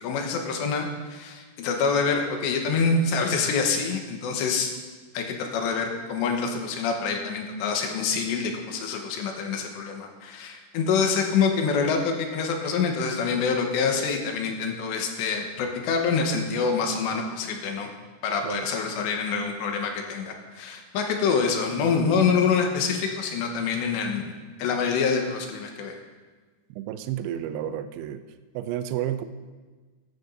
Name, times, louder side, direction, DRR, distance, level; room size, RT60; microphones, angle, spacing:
voice 1, 0.0-4.7 5.1-17.9 18.2-26.0, left 5 dB, 80° left, 3 dB, 3.3 m, -26 dB
voice 2, 26.7-28.2 28.5-29.2, right 11 dB, 85° right, 9 dB, 2.2 m, -31 dB
14.0 x 12.5 x 2.7 m, 1.4 s
omnidirectional pair, 5.1 m